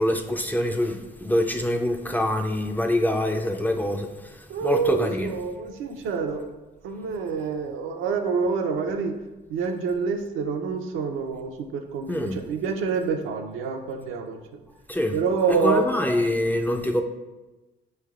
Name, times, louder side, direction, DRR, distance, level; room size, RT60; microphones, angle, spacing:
voice 1, 0.0-5.3 12.1-12.4 14.9-15.2 15.6-17.0, left 1 dB, 10° left, 4 dB, 0.3 m, -25 dB
voice 2, 4.5-6.4 6.8-9.2 9.5-14.4 15.1-15.9, right 5 dB, 85° right, 4 dB, 0.5 m, -27 dB
5.0 x 3.2 x 2.3 m, 1.1 s
cardioid pair, 90°, 20 cm